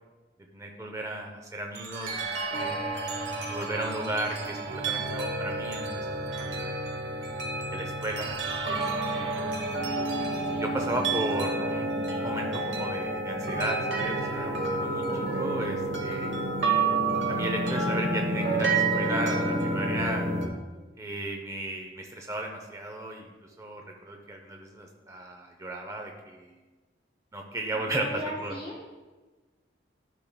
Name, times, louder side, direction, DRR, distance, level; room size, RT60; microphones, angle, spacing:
voice 1, 0.5-2.8 3.5-6.8 7.7-8.8 9.1-9.5 10.5-16.4 17.3-20.3 21.0-26.6 27.3-28.5, right 1 dB, 15° right, 2 dB, 0.5 m, -35 dB
sound 1, 1.7-20.5, right 2 dB, 80° right, 1.1 m, -29 dB
voice 2, 27.7-28.8, left 1 dB, 30° left, -5 dB, 2.4 m, -37 dB
12.0 x 5.8 x 2.2 m, 1.3 s
head